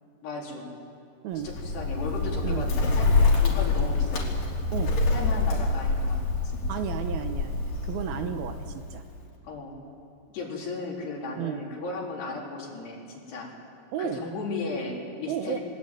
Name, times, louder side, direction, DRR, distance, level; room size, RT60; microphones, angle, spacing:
voice 1, 0.2-0.7 1.4-3.1 3.4-4.4 5.1-6.2 8.1-8.4 9.4-9.7 10.3-13.5 14.0-15.6, left 3 dB, 75° left, -2 dB, 5.7 m, -35 dB
Bird, 1.4-9.2, left 3 dB, 55° left, 4.4 m, -26 dB
voice 2, 6.7-9.0 11.4-11.6 13.9-14.2 15.3-15.6, right 9 dB, 75° right, 7 dB, 2.7 m, -33 dB
21.0 x 20.5 x 9.1 m, 2.4 s
omnidirectional pair, 4.8 m